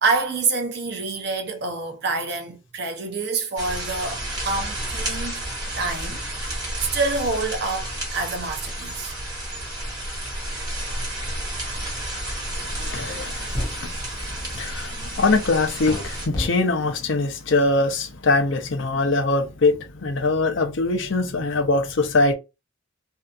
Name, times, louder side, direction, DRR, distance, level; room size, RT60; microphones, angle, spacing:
voice 1, 0.0-5.4 5.8-9.1, right 3 dB, 55° right, 0.6 m, -27 dB
sound 1, 3.6-16.3, right 1 dB, 20° right, 0.9 m, -31 dB
voice 2, 12.8-13.9 14.5-22.3, left 3 dB, 65° left, 0.6 m, -22 dB
sound 2, 13.1-13.2 13.5-13.8 15.9-16.0 16.3-16.5, left 1 dB, 20° left, 0.5 m, -27 dB
2.7 x 2.4 x 2.3 m
head